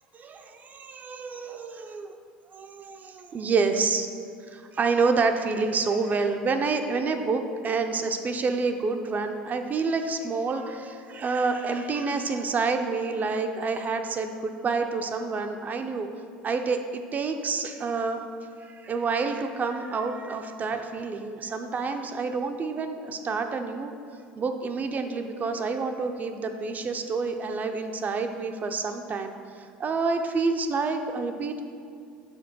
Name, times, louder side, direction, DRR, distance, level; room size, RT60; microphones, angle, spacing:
voice 1, 0.1-2.1 2.5-4.1 4.5-16.1 16.4-18.2 18.6-23.9 24.4-31.6, right 4 dB, 35° right, 5 dB, 0.5 m, -28 dB
5.1 x 4.4 x 6.0 m, 2.3 s
hypercardioid pair, 75°, 5 cm